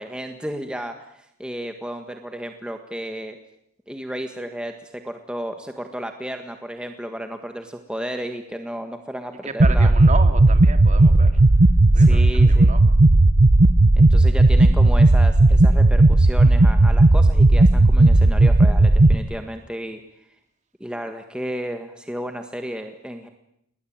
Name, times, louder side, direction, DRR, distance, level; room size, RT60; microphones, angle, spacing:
voice 1, 0.0-3.4 3.9-9.9 11.9-12.7 14.0-20.0 20.8-23.3, equal, 5° right, 5 dB, 1.6 m, -33 dB
voice 2, 9.4-11.4 11.9-13.0, right 3 dB, 35° right, 8 dB, 2.6 m, -32 dB
sound 1, 9.6-19.1, right 2 dB, 50° right, 1.0 m, -14 dB
29.0 x 21.5 x 8.9 m, 0.75 s
head